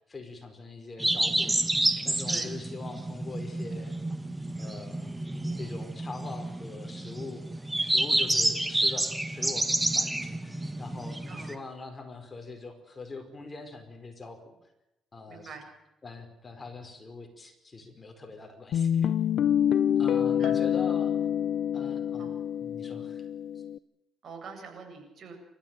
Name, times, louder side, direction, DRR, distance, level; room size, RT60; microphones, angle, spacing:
voice 1, 0.1-4.0 4.6-5.1 5.5-7.5 7.8-14.5 15.1-15.6 16.0-19.2 20.0-21.1 21.7-22.3 22.6-23.2, left 3 dB, 25° left, 5 dB, 4.9 m, -43 dB
sound 1, 1.0-11.5, right 1 dB, 10° right, 1.8 m, -29 dB
voice 2, 15.3-15.6 20.4-20.5 22.2-22.4 24.2-25.3, right 5 dB, 55° right, 5 dB, 7.8 m, -44 dB
Guitar, 18.7-23.8, left 9 dB, 75° left, 0.8 m, -26 dB
29.0 x 14.0 x 9.1 m, 0.89 s
cardioid pair, 90°, 0 cm